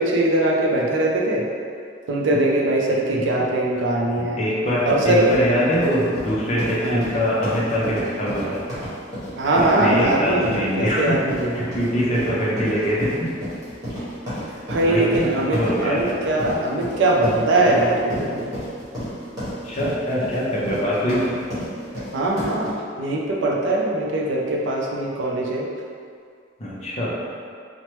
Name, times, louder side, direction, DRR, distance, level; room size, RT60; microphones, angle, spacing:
voice 1, 0.0-1.4 2.1-4.4 4.9-5.3 6.8-7.0 9.4-11.7 14.7-18.5 22.1-22.7 23.0-25.7, right 2 dB, 75° right, -1 dB, 0.4 m, -21 dB
voice 2, 4.2-8.6 9.6-11.2 11.5-13.3 14.8-16.2 19.6-21.4 26.6-27.2, equal, 35° left, -6 dB, 0.6 m, -23 dB
sound 1, 4.6-22.7, equal, 20° right, 1.1 m, -32 dB
3.0 x 2.1 x 3.0 m, 2.2 s
head